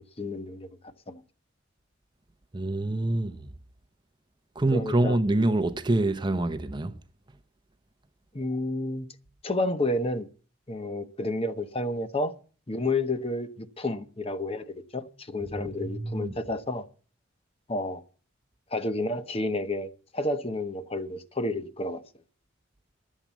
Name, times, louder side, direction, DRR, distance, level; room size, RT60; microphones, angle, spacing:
voice 1, 0.2-1.2 4.7-5.2 8.3-9.1 9.4-10.3 10.7-12.3 12.7-16.8 17.7-18.0 18.7-22.0, left 2 dB, 30° left, 0.8 m, -30 dB
voice 2, 2.5-3.4 4.6-7.0 15.8-16.3, right 2 dB, 20° right, 0.6 m, -26 dB
12.0 x 7.4 x 8.2 m
head